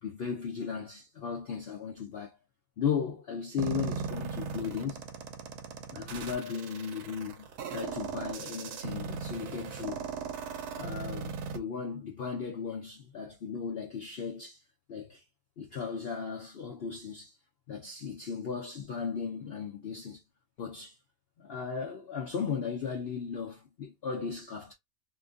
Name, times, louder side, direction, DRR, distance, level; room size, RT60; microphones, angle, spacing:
voice 1, 0.0-2.4 2.8-5.0 5.9-10.1 10.8-14.6 14.9-15.2 15.6-17.4 17.7-20.2 20.6-21.0 21.4-24.7, left 6 dB, 90° left, 0.5 m, -36 dB
sound 1, 3.6-11.6, right 6 dB, 70° right, 1.0 m, -38 dB
2.9 x 2.6 x 2.4 m
omnidirectional pair, 1.8 m